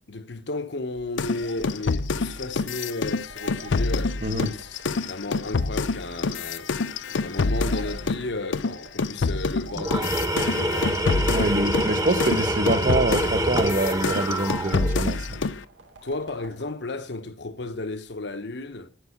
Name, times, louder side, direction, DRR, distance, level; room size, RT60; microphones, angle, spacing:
voice 1, 0.1-6.7 7.2-11.0 16.0-18.9, left 2 dB, 65° left, 0.9 m, -34 dB
sound 1, 1.2-8.3 8.5-15.6, left 4 dB, 90° left, 0.6 m, -27 dB
sound 2, 1.4-16.7, right 3 dB, 85° right, 2.9 m, -48 dB
Tools, 9.7-15.1, right 1 dB, 20° right, 1.1 m, -26 dB
voice 2, 11.3-15.4, right 2 dB, 45° right, 0.9 m, -25 dB
9.5 x 7.4 x 8.4 m
head